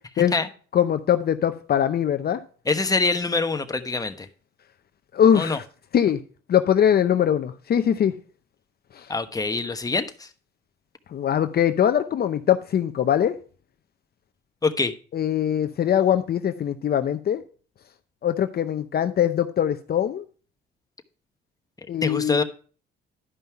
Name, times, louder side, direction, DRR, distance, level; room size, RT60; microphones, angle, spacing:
voice 1, 0.7-2.4 5.1-5.6 5.9-6.2 6.5-8.1 9.0-9.1 11.1-13.3 15.1-17.4 18.2-20.2 21.9-22.4, left 9 dB, 50° left, 9 dB, 0.7 m, -22 dB
voice 2, 2.7-4.3 5.3-5.6 9.1-10.3 14.6-14.9 22.0-22.4, left 3 dB, 20° left, 7 dB, 1.1 m, -24 dB
11.5 x 5.5 x 4.5 m, 0.40 s
cardioid pair, 90°, 20 cm